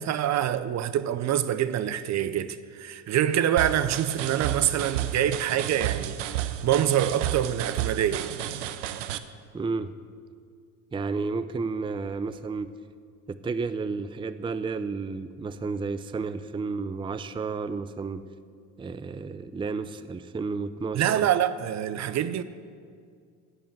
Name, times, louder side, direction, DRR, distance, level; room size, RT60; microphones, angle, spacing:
voice 1, 0.0-8.3 20.9-22.4, right 10 dB, 50° right, 0.7 m, -26 dB
sound 1, 3.6-9.2, right 12 dB, 85° right, 0.7 m, -32 dB
voice 2, 9.5-9.9 10.9-12.7 13.3-18.2 18.8-21.3, right 4 dB, 15° right, 0.5 m, -32 dB
11.0 x 8.6 x 7.9 m
hypercardioid pair, 65°, 36 cm